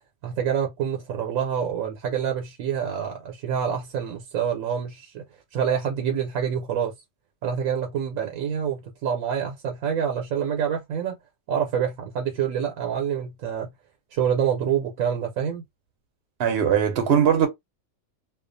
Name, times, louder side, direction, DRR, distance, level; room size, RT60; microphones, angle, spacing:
voice 1, 0.2-5.2 5.5-6.9 7.4-11.2 11.5-13.7 14.1-15.6, right 8 dB, 90° right, 1.0 m, -27 dB
voice 2, 16.4-17.5, right 8 dB, 60° right, 0.7 m, -20 dB
2.4 x 2.3 x 2.5 m
omnidirectional pair, 1.4 m